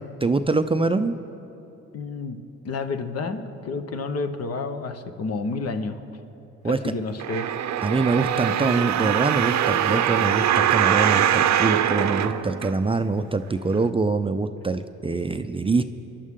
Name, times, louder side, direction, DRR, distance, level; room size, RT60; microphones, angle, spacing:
voice 1, 0.2-1.2 6.6-6.8 7.8-15.8, right 3 dB, 20° right, 9 dB, 0.5 m, -24 dB
voice 2, 1.9-2.4 2.6-6.0 6.6-7.5, left 3 dB, 55° left, 7 dB, 1.2 m, -30 dB
sound 1, 7.2-13.1 13.7-13.8, right 10 dB, 65° right, 0.7 m, -22 dB
27.5 x 11.5 x 3.7 m, 2.9 s
cardioid pair, 90°, 30 cm